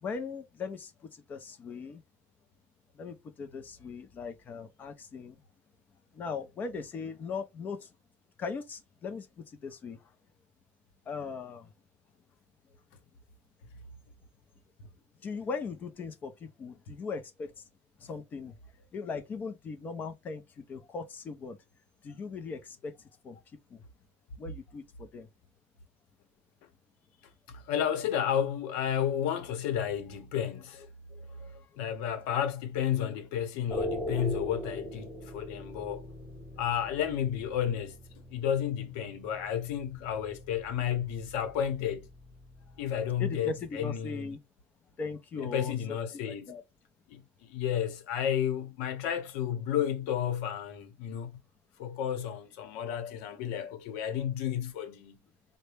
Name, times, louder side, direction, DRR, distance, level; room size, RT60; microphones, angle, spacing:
voice 1, 0.0-2.0 2.9-5.4 6.1-7.9 8.4-10.1 11.1-11.7 15.2-17.6 18.0-21.6 22.0-23.4 23.7-23.8 24.4-25.3 30.8-31.8 43.2-44.4 45.0-46.0 46.2-46.6, left 4 dB, 25° left, 0.6 m, -39 dB
voice 2, 27.5-30.9 31.8-36.1 36.6-42.1 42.8-44.3 45.4-46.5 47.1-51.4 51.8-55.2, left 9 dB, 70° left, 0.9 m, -32 dB
sound 1, 33.7-43.9, equal, ahead, 1.3 m, -42 dB
4.0 x 2.2 x 3.3 m
cardioid pair, 165°, 7 cm